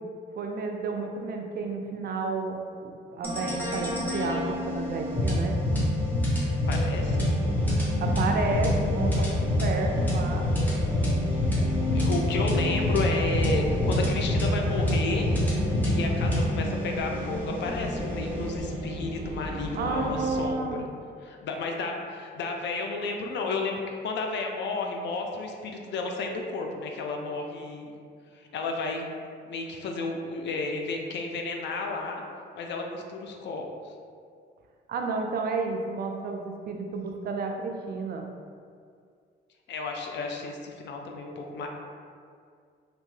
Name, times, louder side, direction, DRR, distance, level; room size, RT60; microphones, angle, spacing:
voice 1, 0.4-5.6 8.0-10.5 19.8-20.8 34.9-38.2, right 3 dB, 50° right, 3 dB, 0.4 m, -31 dB
sound 1, 3.2-18.6, left 1 dB, 10° left, 0.8 m, -27 dB
voice 2, 6.7-7.3 11.9-15.3 15.6-20.8 21.2-27.9 28.4-29.1 29.4-32.2 32.5-33.7 39.7-41.7, left 3 dB, 65° left, 2 dB, 0.4 m, -32 dB
sound 2, 6.9-20.5, equal, 20° right, 1.0 m, -35 dB
2.8 x 2.1 x 3.1 m, 2.2 s
cardioid pair, 90°, 20 cm